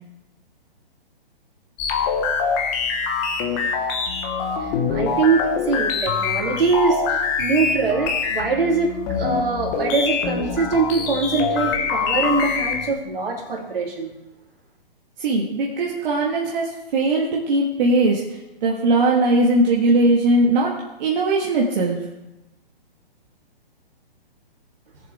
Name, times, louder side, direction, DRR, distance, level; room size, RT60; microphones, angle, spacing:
sound 1, 1.8-12.9, left 5 dB, 30° left, 1.5 m, -24 dB
voice 1, 4.6-14.1, right 4 dB, 70° right, 0 dB, 3.2 m, -23 dB
voice 2, 15.2-20.7 21.0-22.0, right 2 dB, 50° right, -3 dB, 1.7 m, -19 dB
18.5 x 7.3 x 3.5 m, 0.94 s
hypercardioid pair, 135°, 30 cm